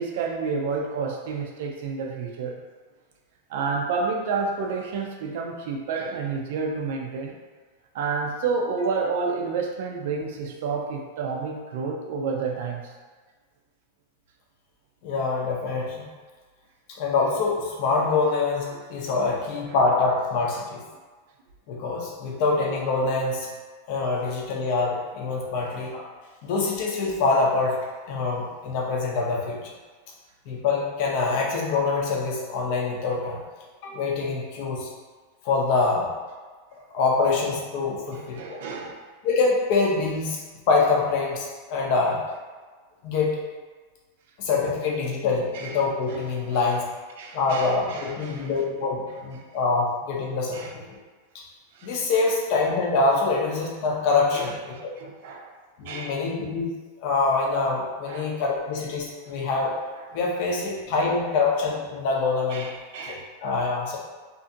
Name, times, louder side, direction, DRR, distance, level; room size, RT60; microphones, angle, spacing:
voice 1, 0.0-2.6 3.5-7.3 7.9-12.9 25.6-25.7 38.1-39.0 45.5-45.8 46.5-46.6 47.2-48.5 50.5-50.7 51.7-52.0 54.3-54.6 55.0-55.5 55.8-56.2 58.1-58.2 59.3-59.4 59.9-60.0 62.5-63.3, right 4 dB, 60° right, 1 dB, 0.4 m, -30 dB
voice 2, 15.0-16.1 16.9-20.8 21.7-23.5 23.9-26.1 26.4-27.8 28.1-29.6 30.5-33.4 33.8-34.9 35.4-36.1 36.9-38.6 39.2-42.2 43.0-43.3 44.4-46.9 47.3-50.6 50.9-51.0 51.8-54.9 55.8-56.7 57.0-59.7 60.1-62.7 63.1-64.0, left 3 dB, 45° left, -2 dB, 0.6 m, -25 dB
2.6 x 2.5 x 2.5 m, 1.4 s
supercardioid pair, 160°, 0 cm